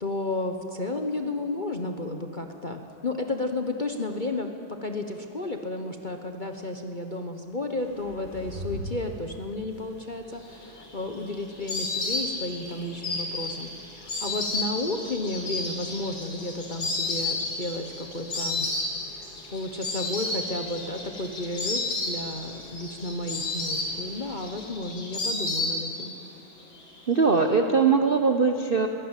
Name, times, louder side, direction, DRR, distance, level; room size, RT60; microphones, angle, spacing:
voice 1, 0.0-4.5 4.8-18.7 19.1-26.1, left 2 dB, 35° left, 4 dB, 0.9 m, -32 dB
sound 1, 7.7-24.7, right 1 dB, 30° right, 4.7 m, -47 dB
Insect, 10.5-26.2 26.5-27.3, left 2 dB, 85° left, 3.7 m, -32 dB
voice 2, 27.1-28.9, right 5 dB, 45° right, 5 dB, 0.7 m, -21 dB
22.0 x 16.5 x 9.0 m, 2.6 s
omnidirectional pair, 2.1 m